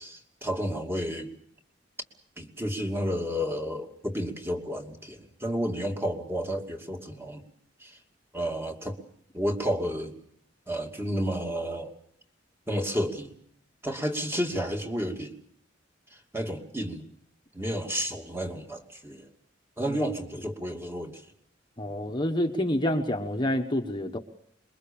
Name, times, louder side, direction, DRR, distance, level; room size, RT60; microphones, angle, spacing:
voice 1, 0.0-1.3 2.4-7.4 7.8-8.0 8.3-9.0 9.3-10.1 10.7-11.9 12.7-13.3 13.8-15.3 16.3-17.0 17.5-19.3 19.8-21.2, equal, 10° right, 3 dB, 2.7 m, -31 dB
voice 2, 21.8-24.2, left 1 dB, 25° left, 4 dB, 1.3 m, -28 dB
26.5 x 22.5 x 7.1 m, 0.66 s
head